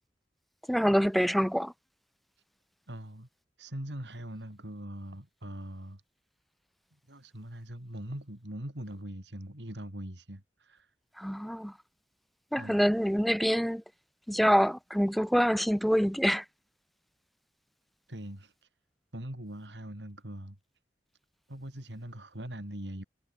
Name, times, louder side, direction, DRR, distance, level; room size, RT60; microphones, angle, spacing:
voice 1, 0.7-1.7 11.2-11.7 12.5-13.8 14.3-16.4, equal, ahead, 0.5 m, -26 dB
voice 2, 2.9-3.3 3.6-6.0 7.1-10.9 12.5-12.8 18.1-18.5 19.1-20.6 21.5-23.0, right 1 dB, 80° right, 4.7 m, -41 dB
head